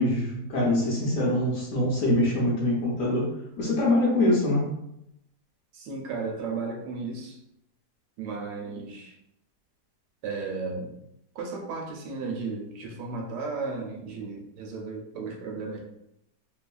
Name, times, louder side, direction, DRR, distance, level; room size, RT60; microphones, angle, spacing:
voice 1, 0.0-3.3 3.6-4.7, left 1 dB, 65° left, -3 dB, 1.0 m, -24 dB
voice 2, 5.7-7.4 8.2-9.2 10.2-10.9 11.3-15.8, right 4 dB, 80° right, 0 dB, 1.2 m, -34 dB
3.0 x 2.4 x 2.3 m, 0.80 s
omnidirectional pair, 1.8 m